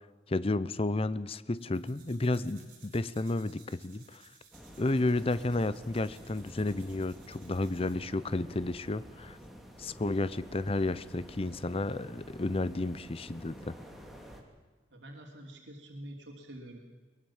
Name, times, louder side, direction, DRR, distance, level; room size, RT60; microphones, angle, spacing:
voice 1, 0.3-4.2 4.8-9.4 9.8-13.7, left 2 dB, 35° left, 16 dB, 0.7 m, -32 dB
sound 1, 1.6-8.0, right 6 dB, 50° right, 6.1 m, -60 dB
sound 2, 4.5-14.4, equal, ahead, 2.7 m, -50 dB
voice 2, 14.9-16.8, right 1 dB, 85° right, 1 dB, 3.1 m, -46 dB
22.0 x 21.5 x 7.3 m, 1.4 s
head